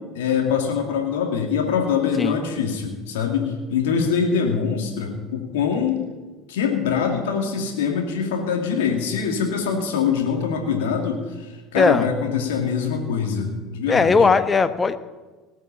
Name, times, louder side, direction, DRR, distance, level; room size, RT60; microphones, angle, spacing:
voice 1, 0.1-6.0 6.5-14.3, left 6 dB, 75° left, 2 dB, 2.5 m, -24 dB
voice 2, 11.7-12.1 13.9-15.0, left 4 dB, 25° left, 12 dB, 1.0 m, -18 dB
18.5 x 6.5 x 8.7 m, 1.3 s
hypercardioid pair, 70°, 0 cm